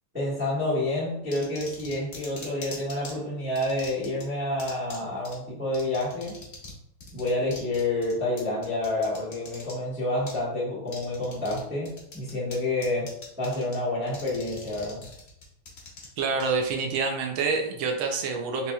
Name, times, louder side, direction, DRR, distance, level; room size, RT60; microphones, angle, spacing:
voice 1, 0.1-6.4 7.1-15.0, left 2 dB, 5° right, -10 dB, 0.9 m, -29 dB
sound 1, 1.3-3.1 3.5-4.2 4.6-5.0 5.2-5.3 5.7-6.7 7.0-9.7 10.3-10.4 10.9-11.6 11.8-12.5 12.8-13.7 14.1-16.4, left 3 dB, 80° left, 0.5 m, -42 dB
voice 2, 16.2-18.7, right 4 dB, 75° right, 2 dB, 1.3 m, -27 dB
4.1 x 2.9 x 2.3 m, 0.79 s
omnidirectional pair, 2.4 m